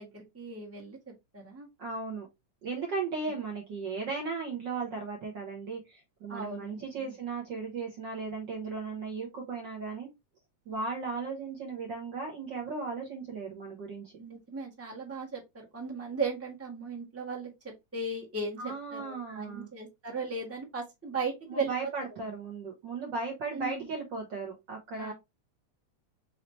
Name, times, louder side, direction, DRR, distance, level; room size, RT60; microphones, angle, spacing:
voice 1, 0.0-1.7 6.3-7.1 14.2-21.7 23.5-23.9 24.9-25.1, right 3 dB, 20° right, -2 dB, 0.4 m, -37 dB
voice 2, 1.8-2.3 2.6-10.1 10.7-14.1 18.6-19.7 21.5-25.1, right 4 dB, 60° right, 1 dB, 1.2 m, -36 dB
5.6 x 2.9 x 3.1 m, 0.21 s
omnidirectional pair, 3.4 m